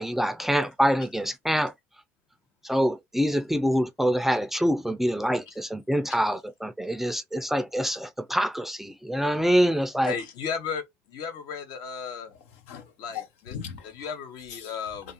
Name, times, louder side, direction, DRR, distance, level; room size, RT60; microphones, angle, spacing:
voice 1, 0.0-1.7 2.6-10.1, equal, 5° right, 0.4 m, -25 dB
voice 2, 10.0-12.3 13.0-13.5 13.9-15.1, left 6 dB, 70° left, 0.9 m, -35 dB
voice 3, 12.3-14.1 14.5-14.8, left 8 dB, 90° left, 0.6 m, -41 dB
2.4 x 2.4 x 2.8 m
supercardioid pair, 85°, 7 cm